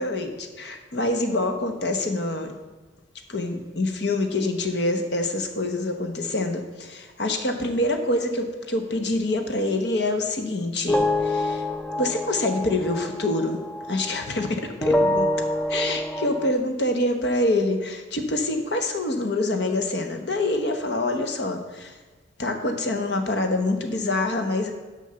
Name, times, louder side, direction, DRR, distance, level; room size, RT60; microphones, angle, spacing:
voice 1, 0.0-2.5 3.3-11.6 12.0-13.6 13.9-15.3 15.7-22.0 22.4-24.7, left 2 dB, 60° left, 6 dB, 0.9 m, -26 dB
sound 1, 10.9-14.5 14.8-16.5, left 1 dB, 5° left, 0.3 m, -26 dB
6.6 x 5.4 x 6.7 m, 1.3 s
head